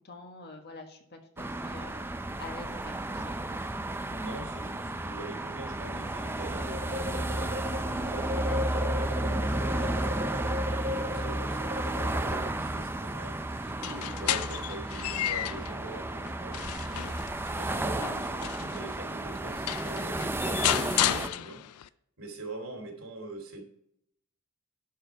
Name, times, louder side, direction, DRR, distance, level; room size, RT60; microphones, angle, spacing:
voice 1, 0.0-3.4 8.5-8.8, left 3 dB, 50° left, 3 dB, 1.5 m, -47 dB
sound 1, 1.4-21.3, right 1 dB, 10° right, 0.4 m, -33 dB
voice 2, 4.1-7.8 8.0-10.5 10.8-13.6 13.8-21.9 22.2-23.6, right 2 dB, 75° right, 2 dB, 2.8 m, -44 dB
sound 2, 6.5-12.5, left 1 dB, 45° right, 0.9 m, -36 dB
sound 3, 13.7-15.8 16.3-18.8 19.4-19.5 19.7-21.9, left 13 dB, 90° left, 0.4 m, -32 dB
11.0 x 4.7 x 4.7 m, 0.71 s
head